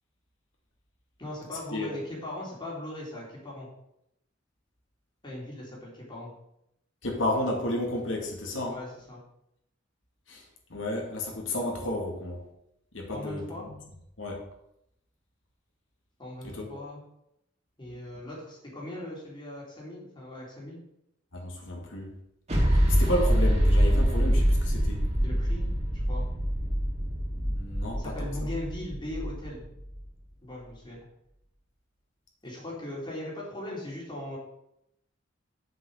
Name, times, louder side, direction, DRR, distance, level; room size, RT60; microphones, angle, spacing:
voice 1, 1.2-3.7 5.2-6.3 8.7-9.2 13.1-13.7 16.2-17.0 17.8-20.8 25.2-26.2 28.0-29.7 30.4-31.0 32.4-34.4, left 1 dB, 25° left, -4 dB, 3.5 m, -39 dB
voice 2, 7.0-8.8 10.3-10.4 10.7-12.4 12.9-13.7 14.2-14.4 16.4-16.7 21.3-22.1 22.9-25.1 27.4-28.1, left 1 dB, 75° left, 0 dB, 2.3 m, -32 dB
sound 1, 22.5-30.0, equal, 35° right, 3.4 m, -25 dB
7.5 x 6.0 x 6.6 m, 0.79 s
head